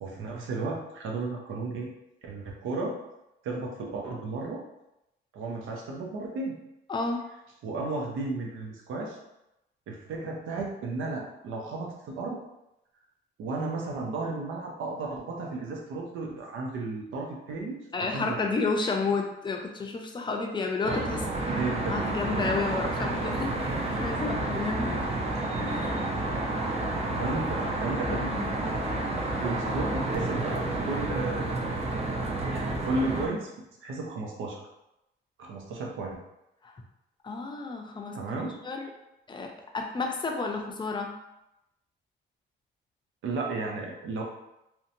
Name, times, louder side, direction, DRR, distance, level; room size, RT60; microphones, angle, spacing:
voice 1, 0.0-1.9 2.2-3.0 3.4-4.6 5.3-6.5 7.6-9.2 9.9-12.4 13.4-18.5 21.5-22.0 25.9-26.1 27.1-28.3 29.4-31.8 32.5-33.5 33.8-34.6 35.4-36.2 38.1-38.6 43.2-44.2, right 3 dB, 85° right, -1 dB, 0.6 m, -34 dB
voice 2, 6.9-7.2 17.9-21.3 21.9-25.1 25.6-26.0 28.1-28.5 36.6-36.7 37.2-38.2 38.6-38.9 39.3-41.1, left 3 dB, 25° left, 2 dB, 0.5 m, -31 dB
Traffic noise roadway noise, 20.8-33.3, right 2 dB, 30° right, 0.5 m, -30 dB
2.7 x 2.2 x 2.6 m, 0.88 s
cardioid pair, 90°, 20 cm